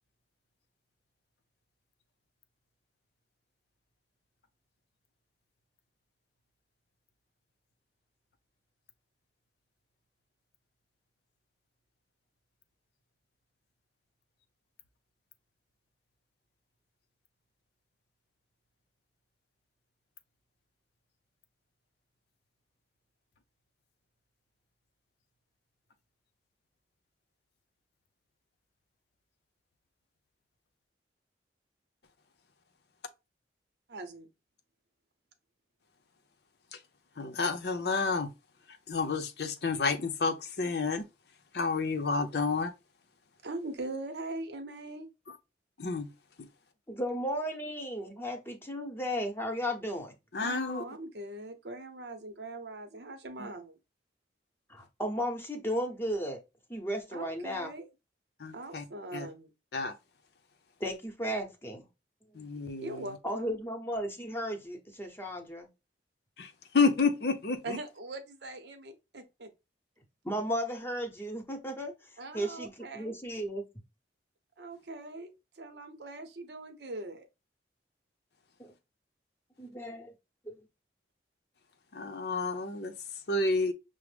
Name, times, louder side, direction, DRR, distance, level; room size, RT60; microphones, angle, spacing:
voice 1, 33.9-34.3 43.4-45.1 50.4-53.8 57.1-57.9 58.5-59.5 62.8-63.6 67.6-69.5 72.2-73.2 74.6-77.3, right 2 dB, 70° right, 0.8 m, -41 dB
voice 2, 37.2-38.3 38.9-41.1 41.5-42.7 45.3-45.4 45.8-46.1 46.4-46.5 50.3-50.8 53.4-53.5 58.4-58.8 59.1-59.3 59.7-59.9 62.3-63.1 66.4-67.8 81.9-82.9 83.3-83.7, left 4 dB, 65° left, 0.6 m, -30 dB
voice 3, 46.9-50.1 54.7-56.4 56.7-57.7 60.8-61.8 63.2-65.7 70.2-71.9 72.3-73.6 78.6-78.7 79.6-80.1 80.4-80.6, equal, 15° left, 0.8 m, -34 dB
6.1 x 2.1 x 3.3 m
head